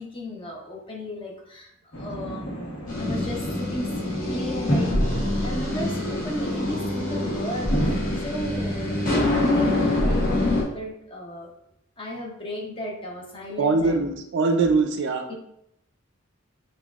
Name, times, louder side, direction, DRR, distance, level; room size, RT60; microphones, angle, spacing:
voice 1, 0.0-11.5 12.0-14.1 15.3-15.4, left 1 dB, 25° left, -1 dB, 0.7 m, -35 dB
sound 1, 1.9-9.6, equal, 70° left, 1.1 m, -31 dB
sound 2, 2.9-10.6, left 1 dB, 40° left, 1.0 m, -26 dB
voice 2, 13.6-15.3, right 3 dB, 55° right, 5 dB, 0.4 m, -22 dB
5.7 x 2.3 x 2.4 m, 0.77 s
head